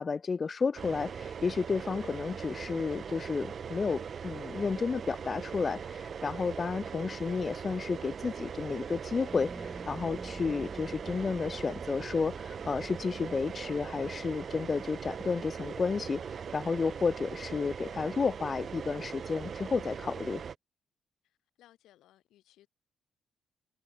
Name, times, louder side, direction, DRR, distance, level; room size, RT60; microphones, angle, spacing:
voice 1, 0.0-20.4, left 5 dB, 35° left, 0.8 m, -32 dB
sound 1, 0.8-20.6, right 7 dB, 50° right, 0.4 m, -40 dB
sound 2, 9.3-14.7, right 2 dB, 10° right, 0.8 m, -48 dB
voice 2, 21.2-22.7, left 14 dB, 85° left, 4.1 m, -63 dB
cardioid pair, 90°, 0 cm